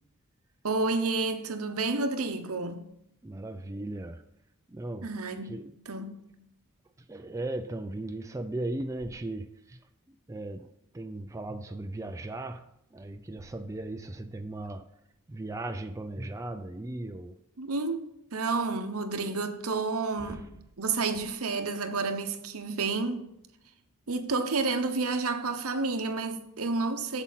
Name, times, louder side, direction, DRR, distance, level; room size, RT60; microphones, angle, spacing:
voice 1, 0.6-2.8 5.0-5.6 5.9-6.2 17.6-20.4 20.8-23.3 24.1-27.2, right 3 dB, 75° right, 0.9 m, -30 dB
voice 2, 3.2-4.2 4.7-5.1 5.4-5.7 7.1-9.8 10.3-10.7 10.9-14.9 15.3-17.4 20.2-20.5, right 2 dB, 15° right, 0.3 m, -37 dB
8.1 x 7.3 x 4.0 m
head